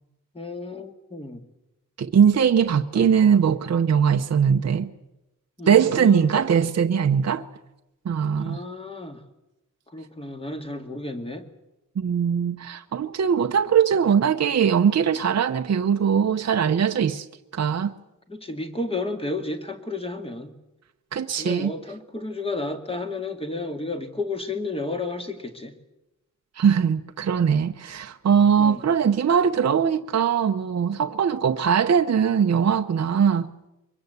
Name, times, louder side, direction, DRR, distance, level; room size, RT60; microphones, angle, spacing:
voice 1, 0.3-1.4 2.9-3.1 5.6-6.5 8.4-9.2 9.9-11.5 18.3-20.5 21.4-25.7 28.6-28.8, left 2 dB, 20° left, 2.2 m, -32 dB
voice 2, 2.0-4.9 5.7-7.5 8.0-8.6 12.0-17.3 17.5-17.9 21.1-21.7 26.6-33.5, right 7 dB, 55° right, 0.8 m, -21 dB
23.5 x 21.5 x 8.2 m
wide cardioid pair, 165°, 31 cm